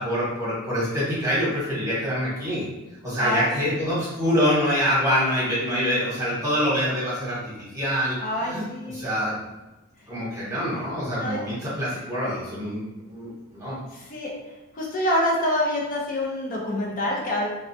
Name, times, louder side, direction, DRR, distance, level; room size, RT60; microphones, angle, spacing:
voice 1, 0.0-2.6 3.0-8.6 8.9-9.4 10.1-12.8 13.1-13.8, equal, 15° right, -9 dB, 1.0 m, -25 dB
voice 2, 8.2-9.1 11.2-11.4 13.9-14.3 14.7-17.5, left 1 dB, 40° left, -2 dB, 0.5 m, -26 dB
2.3 x 2.1 x 2.6 m, 1.0 s
head